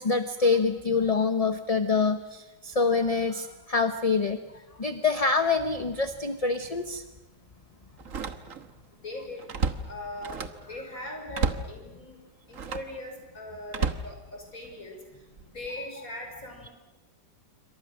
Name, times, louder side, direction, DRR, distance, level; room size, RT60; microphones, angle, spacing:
voice 1, 0.0-7.0, left 4 dB, 30° left, 9 dB, 0.8 m, -26 dB
Slam, 5.9-6.1 6.5-6.7 8.0-8.8 9.1-10.7 11.3-11.8 12.5-13.0 13.7-14.8 15.4-15.7, right 4 dB, 50° right, 1.6 m, -32 dB
voice 2, 9.0-9.4 9.9-10.4 10.7-12.2 12.5-15.0 15.4-16.7, left 1 dB, 50° left, 2 dB, 6.3 m, -40 dB
27.5 x 24.5 x 6.4 m, 1.1 s
omnidirectional pair, 1.9 m